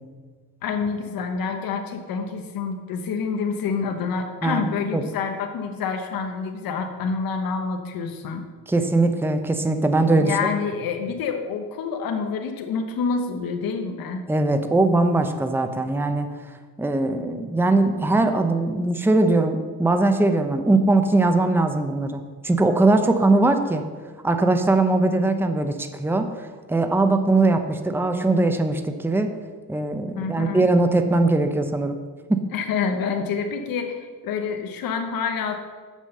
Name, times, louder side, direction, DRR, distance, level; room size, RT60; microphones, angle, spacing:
voice 1, 0.6-8.4 10.0-14.2 30.2-30.7 32.5-35.5, left 5 dB, 75° left, 5 dB, 1.0 m, -27 dB
voice 2, 8.7-10.3 14.3-16.3 16.8-23.8 24.2-29.3 29.7-32.0 32.3-32.4, right 2 dB, 5° right, 7 dB, 0.7 m, -20 dB
7.2 x 6.3 x 6.7 m, 1.5 s
cardioid pair, 85°, 35 cm